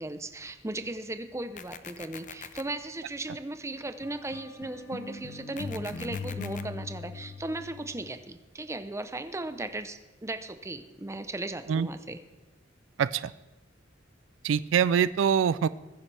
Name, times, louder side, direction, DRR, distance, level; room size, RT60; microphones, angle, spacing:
voice 1, 0.0-12.2, right 2 dB, 15° right, 10 dB, 0.7 m, -37 dB
sound 1, 1.6-2.6 5.6-6.6, left 7 dB, 40° left, 0.6 m, -43 dB
sound 2, 4.0-8.1, left 3 dB, 70° left, 1.0 m, -40 dB
voice 2, 13.0-13.3 14.4-15.7, right 7 dB, 80° right, 17 dB, 0.3 m, -24 dB
20.5 x 10.5 x 3.3 m, 1.1 s
head